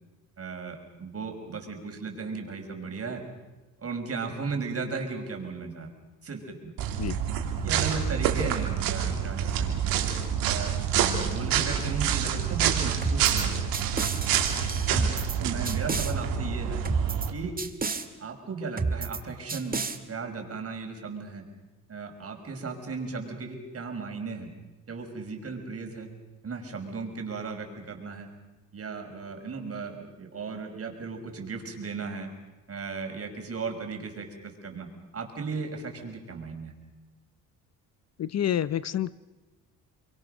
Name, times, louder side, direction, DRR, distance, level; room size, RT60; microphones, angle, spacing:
voice 1, 0.4-3.2 3.8-5.9 6.2-6.7 7.6-10.1 10.5-13.6 14.9-15.1 15.4-16.8 17.3-17.6 18.2-19.8 20.1-21.4 21.9-24.5 24.9-26.1 26.4-28.3 28.7-32.3 32.7-36.7, right 4 dB, 40° right, 3 dB, 5.7 m, -36 dB
sound 1, 6.8-17.3, right 8 dB, 90° right, 3.1 m, -27 dB
sound 2, 13.0-13.4 13.7-15.4 15.7-16.1 16.9-17.3 17.6-18.1 18.8-19.2 19.5-20.0, right 4 dB, 25° right, 1.9 m, -30 dB
voice 2, 38.2-39.1, left 10 dB, 50° left, 17 dB, 0.7 m, -28 dB
29.5 x 23.0 x 6.6 m, 1.1 s
cardioid pair, 85°, 34 cm